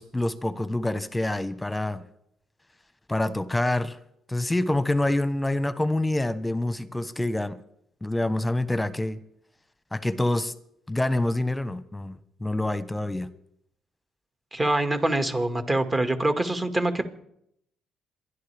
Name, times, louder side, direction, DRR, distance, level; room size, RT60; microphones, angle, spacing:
voice 1, 0.0-2.0 3.1-4.0 4.3-7.6 8.0-9.2 9.9-10.5 10.9-13.3, left 1 dB, 10° left, 1.2 m, -26 dB
voice 2, 14.5-17.1, right 1 dB, 25° right, 2.0 m, -25 dB
27.5 x 11.5 x 3.5 m
supercardioid pair, 70°, 0 cm